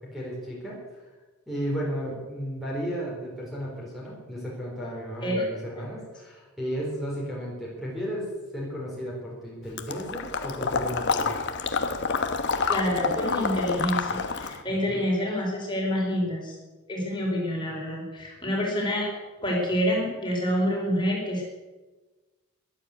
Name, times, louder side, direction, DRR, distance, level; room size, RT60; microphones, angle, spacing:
voice 1, 0.0-0.8 1.5-8.3 8.5-11.3 14.8-15.1, equal, ahead, -5 dB, 4.1 m, -34 dB
Water / Liquid, 9.8-14.6, left 5 dB, 50° left, 1.2 m, -28 dB
voice 2, 12.7-16.5 16.9-19.1 19.4-21.4, equal, 20° left, -2 dB, 4.9 m, -27 dB
14.0 x 12.0 x 8.3 m, 1.2 s
head